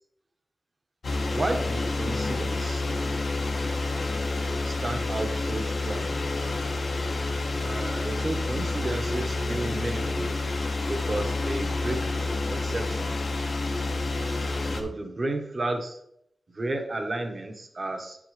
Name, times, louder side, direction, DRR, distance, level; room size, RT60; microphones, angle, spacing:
sound 1, 1.0-14.8, left 2 dB, 75° left, 1.4 m, -29 dB
voice 1, 1.3-2.8 4.6-6.3 7.6-10.4 10.9-12.1 12.5-13.1 14.7-16.0 16.5-18.2, right 2 dB, 50° right, 4 dB, 1.3 m, -32 dB
9.0 x 7.8 x 3.3 m, 0.73 s
wide cardioid pair, 75°, 0 cm